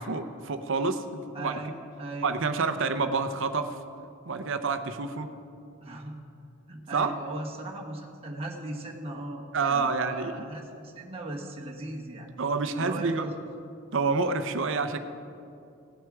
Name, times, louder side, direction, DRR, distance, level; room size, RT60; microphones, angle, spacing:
voice 1, 0.0-1.7 2.2-3.8 4.3-5.3 6.9-7.1 9.5-10.4 12.4-13.3 13.9-15.0, right 4 dB, 65° right, 9 dB, 0.7 m, -28 dB
voice 2, 1.3-1.7 2.0-2.3 5.8-6.2 6.7-12.3 12.8-13.4, right 2 dB, 30° right, -1 dB, 1.3 m, -38 dB
17.0 x 7.8 x 4.8 m, 2.6 s
head